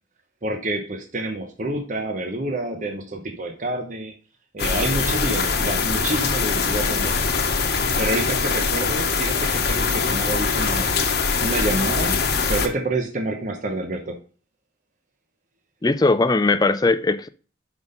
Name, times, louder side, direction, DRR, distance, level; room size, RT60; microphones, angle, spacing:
voice 1, 0.4-4.1 4.5-7.3 8.0-11.0 11.4-12.2 12.5-14.2, right 2 dB, 40° right, 0.8 m, -28 dB
sound 1, 4.6-12.7, left 5 dB, 55° left, 1.0 m, -22 dB
voice 2, 15.8-17.3, left 3 dB, 20° left, 0.4 m, -19 dB
6.1 x 5.3 x 5.3 m
head